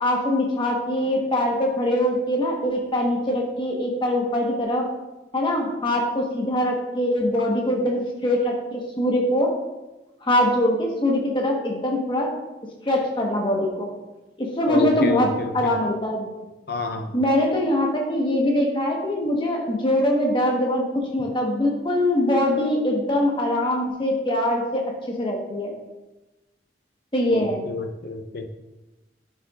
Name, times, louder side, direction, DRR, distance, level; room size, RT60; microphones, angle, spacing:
voice 1, 0.0-4.9 5.3-9.5 10.2-12.3 12.8-13.9 14.4-16.3 17.1-25.7 27.1-27.6, left 1 dB, 30° left, -1 dB, 1.2 m, -23 dB
voice 2, 14.7-15.7 16.7-17.2 27.3-28.5, left 3 dB, 60° left, 5 dB, 0.7 m, -29 dB
10.5 x 5.7 x 2.4 m, 1.0 s
head